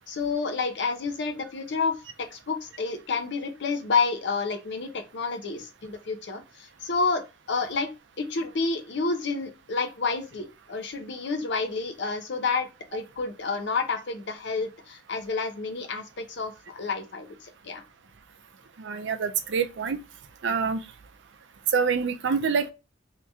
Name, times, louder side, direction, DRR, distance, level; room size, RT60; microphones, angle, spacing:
voice 1, 0.1-7.2 7.5-7.9 8.2-17.8, left 4 dB, 65° left, 0.7 m, -29 dB
voice 2, 18.8-20.0 20.4-20.8 21.7-22.7, right 6 dB, 70° right, 0.5 m, -26 dB
2.9 x 2.8 x 3.4 m
head